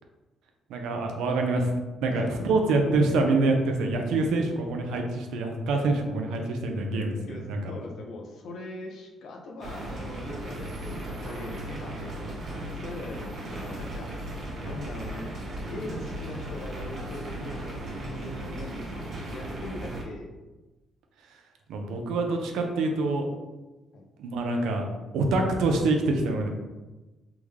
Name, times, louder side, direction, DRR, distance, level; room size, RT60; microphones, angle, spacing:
voice 1, 0.7-1.7 2.0-7.7 21.7-23.3 24.2-24.8 25.1-26.5, right 2 dB, 85° right, 3 dB, 0.5 m, -26 dB
voice 2, 2.1-2.6 7.3-14.1 14.6-20.3 23.9-24.0, left 2 dB, 75° left, 2 dB, 0.6 m, -41 dB
sound 1, 9.6-20.0, right 1 dB, 55° right, 0.8 m, -36 dB
3.5 x 2.1 x 3.2 m, 1.1 s
cardioid pair, 90°, 0 cm